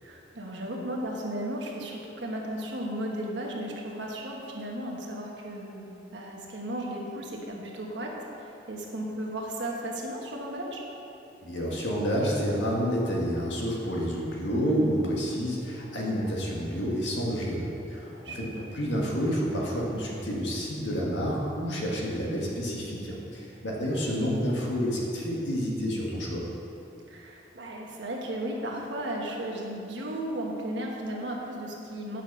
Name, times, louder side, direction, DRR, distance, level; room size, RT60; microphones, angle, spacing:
voice 1, 0.0-10.8 14.5-15.0 18.2-18.6 23.9-24.1 27.1-32.2, right 1 dB, 70° right, -1 dB, 1.3 m, -35 dB
voice 2, 11.4-26.5, equal, 70° left, -3 dB, 1.7 m, -29 dB
9.1 x 6.0 x 5.4 m, 2.9 s
head